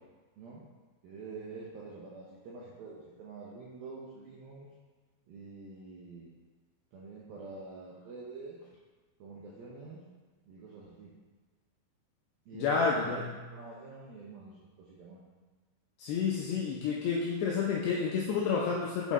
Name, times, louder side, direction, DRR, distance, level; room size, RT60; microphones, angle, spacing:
voice 1, 0.4-0.7 1.0-4.7 5.3-6.3 6.9-8.6 9.2-10.1 10.5-11.1 12.5-13.2 13.5-15.2, right 3 dB, 80° right, -5 dB, 2.1 m, -46 dB
voice 2, 12.5-13.3 16.0-19.1, left 5 dB, 80° left, -3 dB, 2.4 m, -30 dB
8.3 x 5.8 x 3.6 m, 1.3 s
omnidirectional pair, 5.6 m